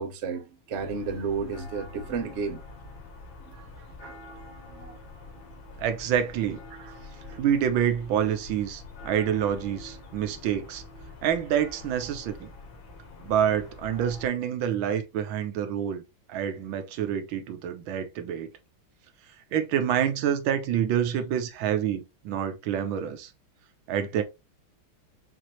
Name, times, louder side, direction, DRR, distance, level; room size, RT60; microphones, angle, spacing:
voice 1, 0.0-2.6 3.5-4.2 4.7-5.0 6.8-6.9 7.3-7.4, right 5 dB, 55° right, 0.8 m, -33 dB
sound 1, 0.7-14.3, left 2 dB, 75° left, 2.1 m, -46 dB
voice 2, 5.8-6.6 7.4-10.8 11.2-12.5 13.2-16.0 16.3-18.5 19.5-23.3 23.9-24.2, right 9 dB, 85° right, 1.5 m, -27 dB
6.1 x 2.6 x 2.9 m
omnidirectional pair, 2.1 m